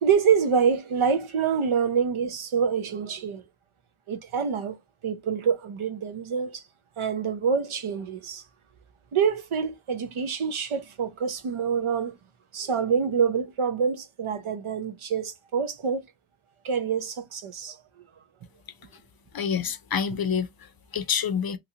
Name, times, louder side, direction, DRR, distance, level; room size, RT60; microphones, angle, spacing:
voice 1, 0.0-3.4 4.1-6.6 7.0-8.4 9.1-12.2 12.5-16.1 16.6-17.8, right 6 dB, 80° right, 0.8 m, -26 dB
voice 2, 19.3-21.6, left 7 dB, 50° left, 0.5 m, -28 dB
3.0 x 2.5 x 2.7 m
wide cardioid pair, 100°, 48 cm